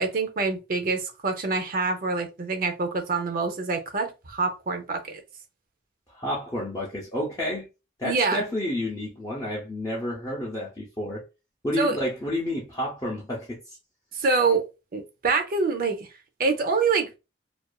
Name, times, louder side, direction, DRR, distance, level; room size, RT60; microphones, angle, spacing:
voice 1, 0.0-5.2 8.0-8.4 11.8-12.0 14.1-14.7 14.9-16.1 16.4-17.1, right 4 dB, 45° right, 0.5 m, -25 dB
voice 2, 6.1-7.7 8.0-11.2 11.6-13.8, left 1 dB, 20° left, 0.5 m, -30 dB
2.4 x 2.3 x 2.3 m
head